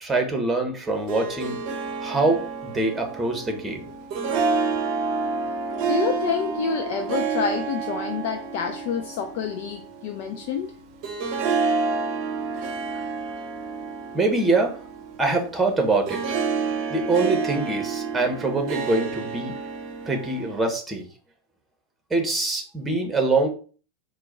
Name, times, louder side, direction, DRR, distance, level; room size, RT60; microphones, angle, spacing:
voice 1, 0.0-1.6 2.0-3.9 14.1-14.8 15.2-16.3 16.9-19.6 20.1-21.1 22.1-23.5, right 3 dB, 10° right, 1.1 m, -24 dB
Harp, 0.9-20.7, right 4 dB, 40° right, 0.7 m, -29 dB
voice 2, 5.9-10.7, left 7 dB, 50° left, 0.4 m, -28 dB
4.5 x 2.3 x 4.2 m
figure-of-eight pair, 85°, 0 cm